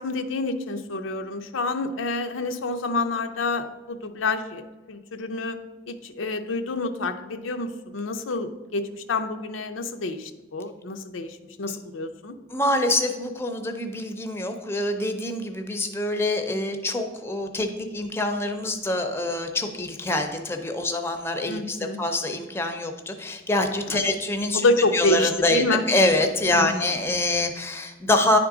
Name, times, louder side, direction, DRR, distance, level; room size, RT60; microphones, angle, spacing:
voice 1, 0.0-5.6 5.9-12.4 21.5-22.0 23.9-24.1 24.5-25.9 26.5-26.9, left 2 dB, 85° left, 7 dB, 0.5 m, -28 dB
voice 2, 12.5-24.6 24.9-28.4, left 2 dB, 15° left, 6 dB, 0.5 m, -25 dB
9.8 x 3.6 x 4.8 m, 1.2 s
head